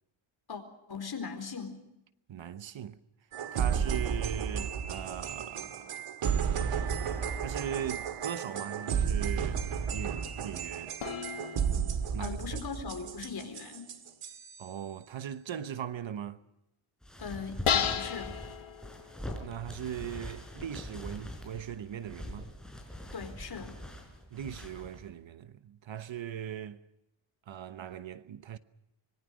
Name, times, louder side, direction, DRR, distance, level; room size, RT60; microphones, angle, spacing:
voice 1, 0.9-1.8 12.2-14.0 17.2-18.4 23.1-23.8, left 5 dB, 50° left, 4.3 m, -39 dB
voice 2, 2.3-3.0 3.5-6.0 7.4-9.6 9.9-10.9 12.1-12.6 14.6-16.4 19.4-22.5 24.3-26.8 27.5-28.6, right 9 dB, 65° right, 1.1 m, -39 dB
sound 1, 3.3-14.7, right 7 dB, 85° right, 2.1 m, -33 dB
sound 2, 11.0-13.1 17.6-19.5, left 8 dB, 80° left, 1.7 m, -34 dB
sound 3, 17.0-25.1, equal, ahead, 4.9 m, -43 dB
25.5 x 22.5 x 6.3 m
wide cardioid pair, 145°, 50 cm